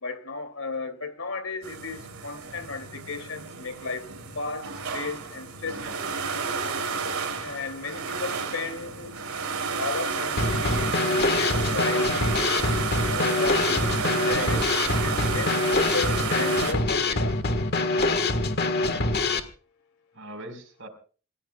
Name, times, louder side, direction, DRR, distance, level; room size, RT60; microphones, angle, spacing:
voice 1, 0.0-4.1 4.3-6.0 7.4-9.1 9.8-12.7 13.1-13.9 14.2-14.6 14.9-17.6, left 3 dB, 75° left, 2.8 m, -35 dB
sound 1, 1.6-16.7, right 5 dB, 80° right, 3.3 m, -31 dB
Drum kit / Snare drum, 10.4-19.4, left 2 dB, 50° left, 1.6 m, -25 dB
voice 2, 12.2-12.5 13.9-14.8 20.1-20.9, right 2 dB, 65° right, 4.6 m, -38 dB
27.5 x 15.0 x 2.4 m
head